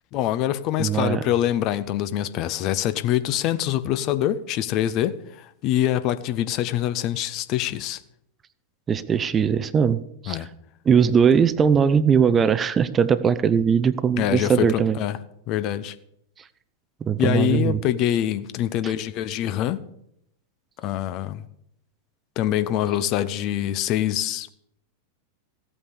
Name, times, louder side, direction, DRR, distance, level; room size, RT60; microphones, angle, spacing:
voice 1, 0.1-8.0 10.3-10.5 14.2-15.2 15.5-16.0 17.2-19.8 20.8-21.4 22.4-24.5, left 12 dB, 40° left, 0.8 m, -25 dB
voice 2, 0.8-1.2 8.9-10.4 10.9-15.0 17.0-17.8 18.8-18.9, right 7 dB, 20° right, 0.7 m, -20 dB
15.5 x 8.8 x 6.7 m
figure-of-eight pair, 90°, 0 cm